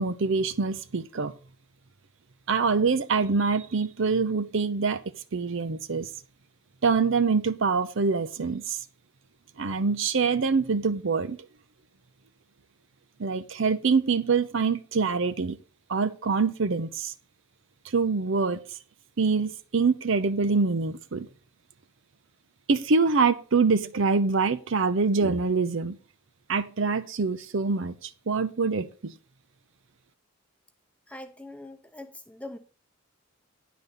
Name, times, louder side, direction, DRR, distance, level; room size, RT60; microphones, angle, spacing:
voice 1, 0.0-1.3 2.5-5.0 5.3-6.1 6.8-8.8 9.6-11.4 13.2-15.6 15.9-17.1 17.9-18.6 19.2-21.3 22.7-26.0 26.5-29.1, right 4 dB, 60° right, 0.6 m, -25 dB
voice 2, 31.1-32.6, left 1 dB, 5° left, 0.8 m, -42 dB
10.5 x 4.1 x 6.8 m
head